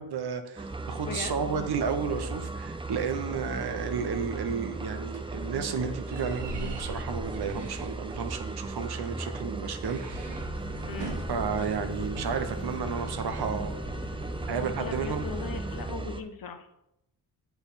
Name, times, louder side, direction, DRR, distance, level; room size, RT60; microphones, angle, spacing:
voice 1, 0.0-10.3 11.3-13.8 14.5-15.2, right 6 dB, 65° right, 7 dB, 0.8 m, -32 dB
sound 1, 0.6-16.2, right 2 dB, 15° right, 0.5 m, -37 dB
voice 2, 1.1-1.5 10.9-11.3 14.8-16.8, left 5 dB, 55° left, 7 dB, 0.9 m, -38 dB
sound 2, 4.1-11.7, right 2 dB, 85° right, 1.1 m, -43 dB
sound 3, 10.1-15.9, equal, 30° left, 1.9 m, -40 dB
7.9 x 3.5 x 4.1 m, 0.83 s
cardioid pair, 60°, 42 cm